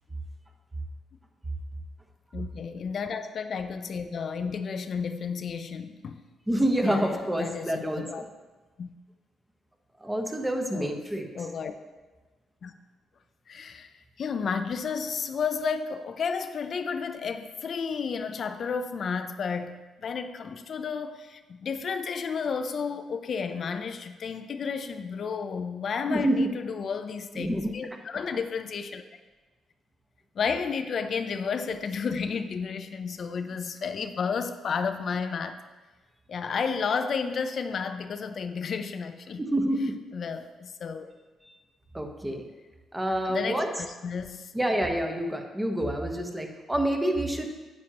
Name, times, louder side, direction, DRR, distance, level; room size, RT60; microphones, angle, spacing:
voice 1, 2.3-6.2 6.8-8.2 8.8-8.9 10.7-11.0 11.3-11.7 12.6-12.7 13.5-13.9 14.2-29.0 30.4-35.6 36.3-39.4 40.1-41.1 43.2-44.5, left 5 dB, 55° left, 0.5 m, -32 dB
voice 2, 6.5-8.2 10.0-11.3 26.1-26.5 27.3-28.0 39.4-40.0 41.4-41.6 41.9-42.5 42.9-43.7 44.5-47.5, right 1 dB, 10° right, 1.1 m, -28 dB
9.6 x 8.8 x 2.9 m
cardioid pair, 90°, 0 cm